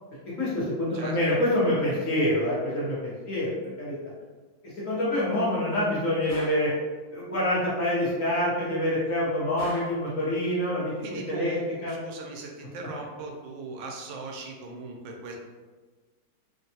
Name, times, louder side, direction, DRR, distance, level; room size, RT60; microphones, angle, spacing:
voice 1, 0.4-3.9 4.8-6.7 7.1-10.9 11.3-11.9, left 1 dB, 55° left, -8 dB, 0.9 m, -26 dB
Gunshot gunfire, 6.3-6.7 9.6-10.0, equal, 35° right, 0.9 m, -40 dB
voice 2, 11.0-15.3, right 3 dB, 75° right, 1 dB, 1.2 m, -39 dB
3.3 x 2.2 x 2.7 m, 1.3 s
omnidirectional pair, 2.2 m